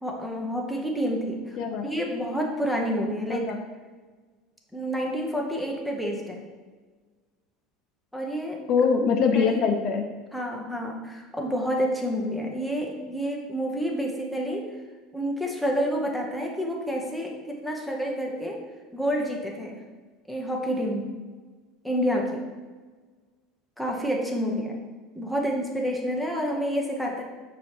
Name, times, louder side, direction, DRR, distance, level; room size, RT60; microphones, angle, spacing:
voice 1, 0.0-1.6 1.8-3.5 4.7-6.4 8.1-8.6 9.3-9.6 10.3-14.7 15.1-18.6 18.9-19.8 20.3-21.1 21.8-22.5 23.8-24.7 25.1-27.2, equal, ahead, -1 dB, 0.7 m, -29 dB
voice 2, 8.7-10.0 24.4-24.6, left 5 dB, 50° left, 4 dB, 0.5 m, -23 dB
6.1 x 2.8 x 3.0 m, 1.4 s
supercardioid pair, 130°, 0 cm